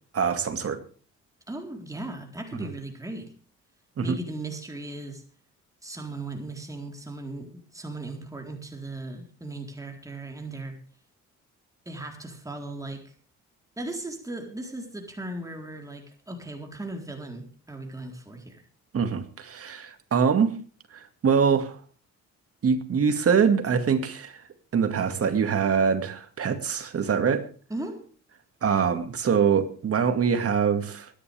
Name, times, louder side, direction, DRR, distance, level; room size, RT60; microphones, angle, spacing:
voice 1, 0.1-0.8 4.0-4.2 18.9-20.6 20.9-21.8 22.6-24.4 24.7-27.5 28.6-31.2, right 6 dB, 50° right, 2.2 m, -24 dB
voice 2, 1.5-3.3 4.0-5.2 5.8-10.8 11.9-13.1 13.8-18.6 27.7-28.1, right 2 dB, 10° right, 4.0 m, -37 dB
23.5 x 10.5 x 3.5 m
cardioid pair, 90°, 30 cm